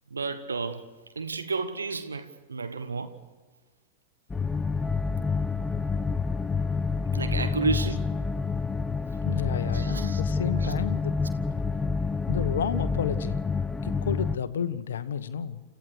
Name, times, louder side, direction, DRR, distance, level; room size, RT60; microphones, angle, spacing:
voice 1, 0.1-0.8 1.1-3.1 7.1-8.0 9.7-10.2 10.6-10.7, right 4 dB, 75° right, 1.2 m, -31 dB
sound 1, 4.3-14.4, left 4 dB, 15° left, 0.6 m, -28 dB
Wind instrument woodwind instrument, 4.8-14.1, left 1 dB, 5° right, 1.0 m, -45 dB
voice 2, 9.2-11.1 12.3-13.4 13.8-15.6, left 7 dB, 65° left, 1.1 m, -31 dB
29.5 x 14.5 x 6.4 m
figure-of-eight pair, 90°, 0 cm